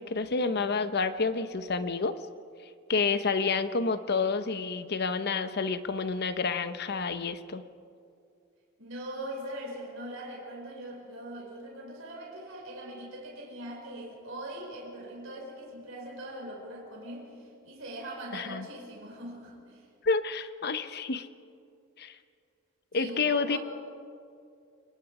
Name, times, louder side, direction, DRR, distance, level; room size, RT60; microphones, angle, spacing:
voice 1, 0.0-2.1 2.9-7.6 18.3-18.7 20.0-21.3 22.0-22.1 22.9-23.6, left 4 dB, 50° left, 11 dB, 0.9 m, -29 dB
voice 2, 8.8-19.8 22.9-23.6, right 1 dB, 65° right, -2 dB, 5.4 m, -41 dB
28.5 x 19.5 x 4.9 m, 2.4 s
head